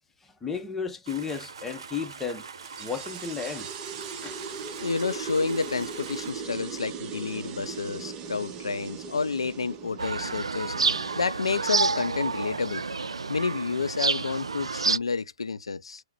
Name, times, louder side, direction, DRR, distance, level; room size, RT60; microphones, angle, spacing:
voice 1, 0.2-2.5 2.8-4.8, left 6 dB, 10° left, 0.8 m, -35 dB
sound 1, 1.0-6.3, right 5 dB, 70° right, 0.8 m, -43 dB
sound 2, 2.6-13.7, right 6 dB, 30° right, 0.9 m, -39 dB
voice 2, 4.8-10.8 11.2-12.8 13.3-16.0, left 4 dB, 85° left, 0.4 m, -30 dB
sound 3, 10.0-15.0, right 4 dB, 85° right, 0.4 m, -28 dB
3.9 x 2.1 x 4.3 m
hypercardioid pair, 125°, 3 cm